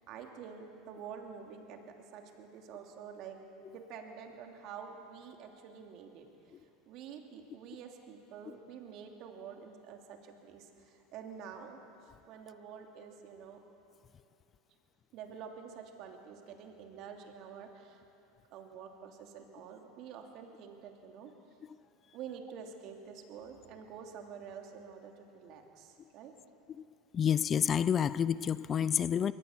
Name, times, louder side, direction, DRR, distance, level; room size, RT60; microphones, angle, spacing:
voice 1, 0.1-3.4 3.7-6.3 6.9-13.6 15.1-18.0 18.5-21.3 22.1-26.3, right 7 dB, 55° right, 3 dB, 2.9 m, -48 dB
voice 2, 27.1-29.3, left 8 dB, 30° left, 18 dB, 0.5 m, -28 dB
23.0 x 18.5 x 7.3 m, 2.9 s
hypercardioid pair, 105°, 0 cm